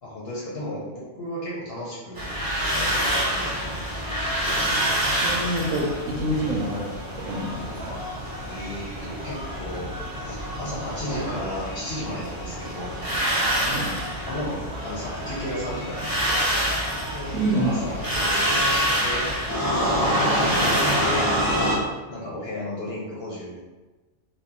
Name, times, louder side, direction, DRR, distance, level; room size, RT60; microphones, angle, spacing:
voice 1, 0.0-2.2 2.7-3.7 8.4-9.9 10.2-12.9 14.2-16.4 17.1-19.3 19.6-21.3 22.1-23.6, left 1 dB, 55° left, -7 dB, 0.9 m, -34 dB
sound 1, 2.2-21.8, equal, 35° right, 0.3 m, -26 dB
voice 2, 4.4-8.0 13.6-13.9 17.3-17.7, right 1 dB, 80° right, -2 dB, 1.0 m, -28 dB
2.9 x 2.3 x 3.6 m, 1.2 s
omnidirectional pair, 1.4 m